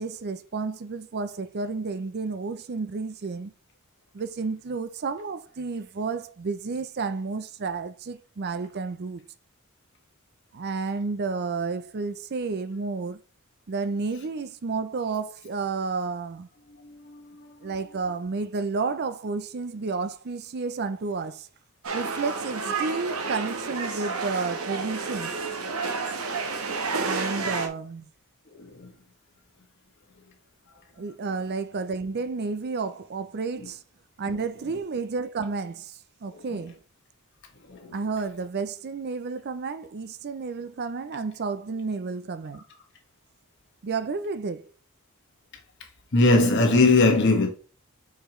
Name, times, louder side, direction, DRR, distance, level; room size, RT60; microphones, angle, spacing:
voice 1, 0.0-3.5 4.1-9.2 10.5-13.2 13.7-16.5 17.6-21.5 21.9-25.3 27.0-28.1 31.0-33.8 34.2-36.8 37.9-42.6 43.8-44.7, right 4 dB, 50° right, 0.5 m, -31 dB
voice 2, 16.8-17.7 28.6-28.9 37.7-37.9 46.1-47.5, left 2 dB, 55° left, 1.7 m, -21 dB
sound 1, 21.8-27.7, right 4 dB, 85° right, 1.2 m, -30 dB
6.6 x 4.8 x 3.1 m
head